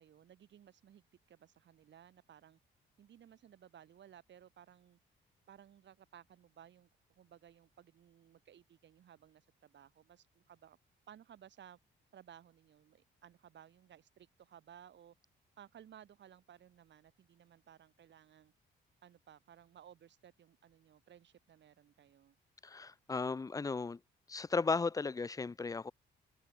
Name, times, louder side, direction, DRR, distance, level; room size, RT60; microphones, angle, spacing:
voice 1, 0.0-2.6 3.0-5.0 5.5-10.8 11.1-11.8 12.1-15.2 15.6-18.5 19.0-22.4, right 10 dB, 65° right, 7.7 m, -59 dB
voice 2, 22.6-24.0 24.3-25.9, left 4 dB, 20° left, 0.5 m, -35 dB
cardioid pair, 90°, 20 cm